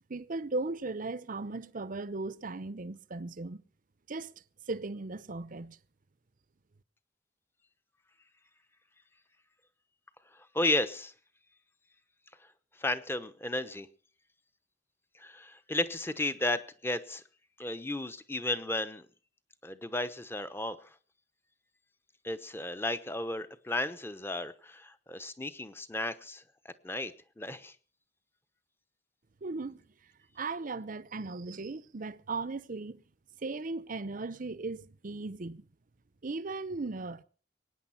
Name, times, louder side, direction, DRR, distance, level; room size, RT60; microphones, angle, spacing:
voice 1, 0.1-3.6 4.1-4.3 4.7-5.8 29.4-29.8 30.4-33.0 33.4-35.7 36.2-37.2, right 3 dB, 45° right, 0.7 m, -37 dB
voice 2, 10.5-11.1 12.8-13.9 15.2-17.2 17.6-19.1 19.6-20.9 22.2-26.4 26.8-27.7, left 2 dB, 15° left, 0.9 m, -34 dB
22.5 x 9.6 x 5.8 m
head